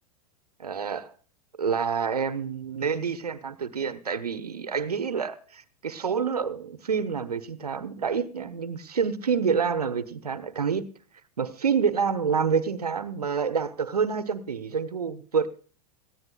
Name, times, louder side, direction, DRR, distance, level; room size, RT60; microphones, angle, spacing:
voice 1, 0.6-1.1 1.6-10.9 11.4-15.5, right 6 dB, 80° right, 1.1 m, -28 dB
18.5 x 14.5 x 2.3 m
figure-of-eight pair, 95°, 20 cm